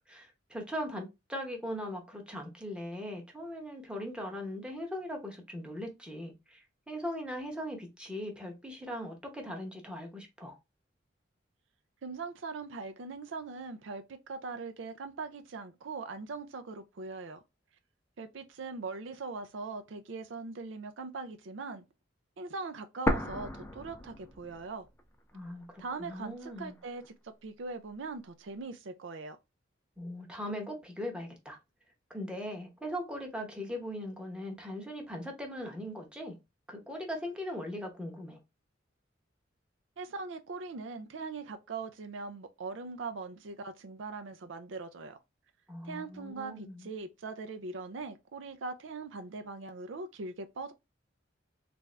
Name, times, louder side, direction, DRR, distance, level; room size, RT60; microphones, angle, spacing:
voice 1, 0.1-10.6 25.3-26.8 30.0-31.6 32.1-36.4 36.7-38.4 45.7-46.9, equal, 5° right, 0.8 m, -40 dB
voice 2, 12.0-17.4 18.2-21.8 22.4-24.9 25.8-29.4 40.0-45.2 45.8-50.7, right 4 dB, 75° right, 0.5 m, -41 dB
sound 1, 23.1-25.0 25.3-25.4 26.1-27.1, equal, 10° left, 0.4 m, -34 dB
3.4 x 2.6 x 3.2 m
head